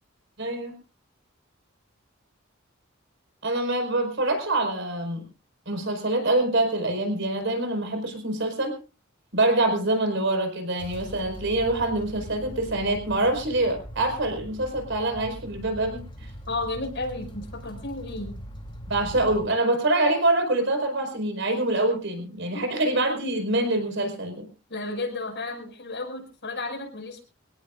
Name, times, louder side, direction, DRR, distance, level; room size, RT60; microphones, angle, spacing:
voice 1, 0.4-0.7 3.4-5.2 5.7-8.7 9.3-16.3 18.9-24.5, right 2 dB, 65° right, 5 dB, 5.0 m, -25 dB
sound 1, 10.8-19.5, equal, 25° left, 3.1 m, -41 dB
voice 2, 16.5-18.4 22.5-22.7 24.7-27.2, left 2 dB, 60° left, 4 dB, 5.7 m, -33 dB
25.0 x 18.0 x 2.5 m, 0.34 s
head